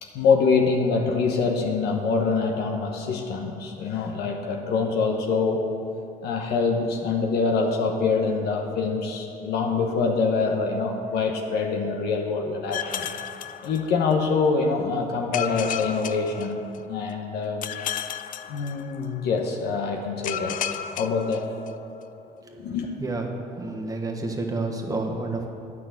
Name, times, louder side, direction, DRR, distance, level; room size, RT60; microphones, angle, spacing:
voice 1, 0.0-5.7 6.2-13.0 13.6-16.6 16.9-17.7 18.5-20.6 21.0-21.4 22.6-22.9, left 4 dB, 75° left, 2 dB, 1.0 m, -25 dB
sound 1, 12.7-14.3 15.3-17.1 17.6-19.3 20.2-22.0, left 10 dB, 55° left, 0.5 m, -34 dB
voice 2, 22.4-23.3 23.6-25.5, right 3 dB, 20° right, 2 dB, 1.3 m, -30 dB
9.5 x 6.0 x 7.7 m, 2.6 s
cardioid pair, 110°, 17 cm